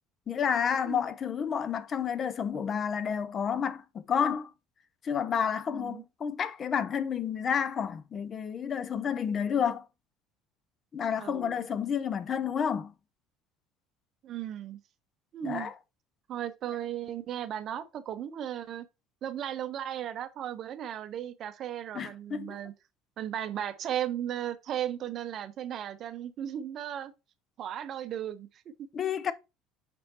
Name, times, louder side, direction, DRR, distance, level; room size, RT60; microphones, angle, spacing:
voice 1, 0.3-4.5 5.0-9.9 10.9-12.9 15.4-15.7 21.9-22.6 28.9-29.3, left 7 dB, 40° left, 0.5 m, -30 dB
voice 2, 5.7-6.0 11.2-11.7 14.2-14.8 15.3-15.7 16.3-18.9 19.2-22.7 23.2-27.1 27.6-28.9, right 10 dB, 55° right, 0.5 m, -36 dB
5.9 x 3.1 x 2.8 m
hypercardioid pair, 75°, 0 cm